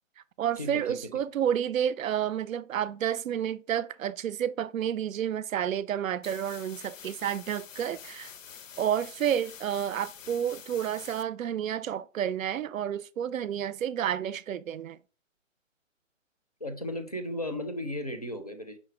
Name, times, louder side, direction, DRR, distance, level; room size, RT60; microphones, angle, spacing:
voice 1, 0.4-8.3 8.8-15.0, right 9 dB, 90° right, 0.5 m, -30 dB
sound 1, 6.2-11.2, left 7 dB, 80° left, 0.6 m, -47 dB
voice 2, 16.6-18.8, left 1 dB, 30° left, 0.4 m, -35 dB
5.6 x 2.1 x 4.4 m
hypercardioid pair, 165°, 39 cm